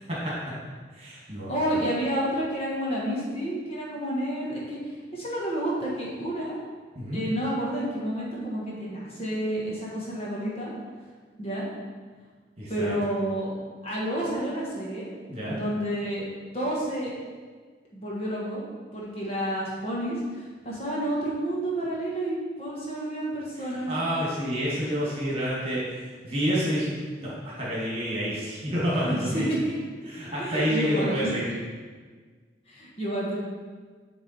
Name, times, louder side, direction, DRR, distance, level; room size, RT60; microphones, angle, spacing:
voice 1, 0.1-0.6 0.9-1.6 7.0-7.2 12.6-12.9 15.3-15.6 23.6-25.9 26.2-29.4 30.1-31.5, equal, 35° right, -6 dB, 2.1 m, -29 dB
voice 2, 1.5-4.8 5.1-6.6 7.1-10.7 11.4-11.7 12.7-13.5 13.8-15.1 15.5-16.2 16.5-17.1 17.9-18.6 18.9-23.9 29.0-29.7 30.4-31.3 32.7-33.3, right 1 dB, 35° left, -5 dB, 1.5 m, -30 dB
9.6 x 3.8 x 4.4 m, 1.5 s
head